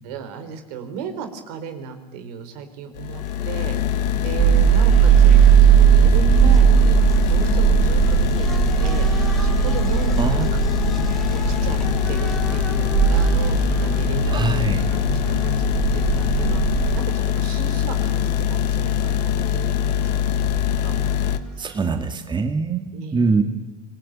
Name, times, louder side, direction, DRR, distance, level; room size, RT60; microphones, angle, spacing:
voice 1, 0.0-3.8 4.2-7.0 7.3-9.1 9.4-10.6 11.3-11.8 12.1-15.5 15.9-20.1 20.4-21.9 22.9-23.3, right 5 dB, 70° right, 8 dB, 4.1 m, -35 dB
sound 1, 2.9-21.4, left 9 dB, 80° left, 1.5 m, -23 dB
sound 2, 3.1-22.1, right 1 dB, ahead, 3.5 m, -38 dB
sound 3, 4.4-17.0, right 11 dB, 40° right, 0.7 m, -18 dB
voice 2, 14.3-14.8 21.6-23.4, right 4 dB, 20° right, 6 dB, 2.4 m, -23 dB
26.5 x 19.0 x 8.9 m, 1.1 s
hypercardioid pair, 85°, 21 cm